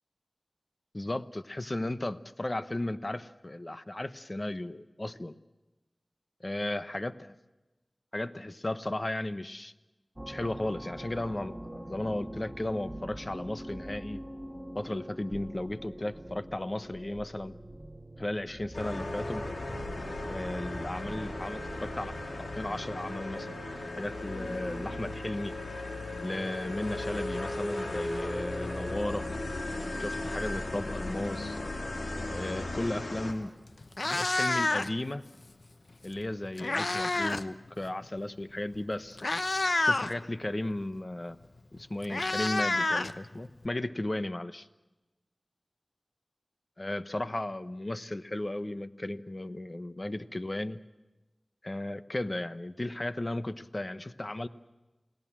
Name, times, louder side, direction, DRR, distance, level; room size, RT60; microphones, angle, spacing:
voice 1, 0.9-5.3 6.4-7.1 8.1-9.7 10.3-14.2 14.7-17.6 18.2-19.4 20.3-22.1 22.4-23.5 24.0-25.5 26.2-29.2 30.0-31.6 32.3-33.5 34.0-35.2 36.0-39.2 39.8-41.4 41.7-44.7 46.8-50.8 51.6-54.5, left 1 dB, 40° left, 12 dB, 1.0 m, -35 dB
sound 1, 10.2-25.2, right 1 dB, 15° right, 1.7 m, -45 dB
sound 2, 18.7-33.3, left 2 dB, 85° left, 3.0 m, -36 dB
Meow, 33.3-33.5 33.8-35.1 36.2-37.5 37.8-38.0 38.7-38.8 39.2-40.1 41.4-41.5 41.8-43.7, left 2 dB, 65° left, 0.9 m, -29 dB
29.0 x 18.5 x 7.4 m, 1.1 s
wide cardioid pair, 50°, 0 cm